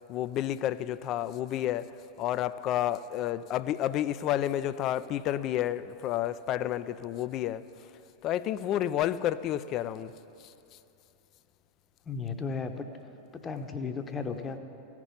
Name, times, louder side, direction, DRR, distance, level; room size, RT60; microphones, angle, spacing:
voice 1, 0.1-1.9 2.2-7.6 8.2-10.1, left 12 dB, 35° left, 15 dB, 0.4 m, -30 dB
voice 2, 12.1-12.9 13.3-14.6, left 5 dB, 20° left, 7 dB, 0.9 m, -35 dB
15.5 x 6.0 x 9.8 m, 2.8 s
figure-of-eight pair, 90°, 0 cm